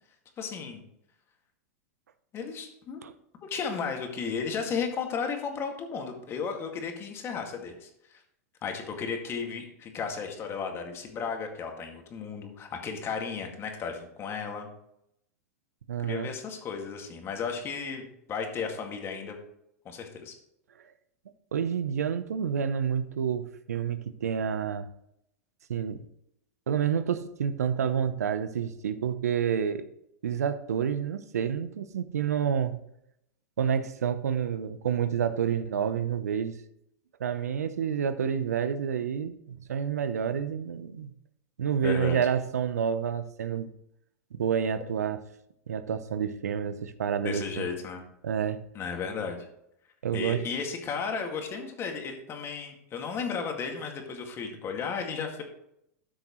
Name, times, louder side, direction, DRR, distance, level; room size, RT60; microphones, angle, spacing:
voice 1, 0.4-0.8 2.3-3.0 3.4-8.2 8.6-14.7 16.0-19.4 19.9-20.4 41.8-42.2 47.2-48.0 48.7-49.5 50.1-55.4, left 5 dB, 30° left, 2.0 m, -34 dB
voice 2, 15.9-16.3 21.5-24.9 25.7-26.0 26.7-29.9 30.2-32.8 33.6-36.5 37.2-41.1 41.6-43.7 44.3-45.2 45.7-47.7 48.2-48.6 50.0-50.4, right 8 dB, 90° right, 0.8 m, -29 dB
13.0 x 6.3 x 3.1 m
hypercardioid pair, 120°, 8 cm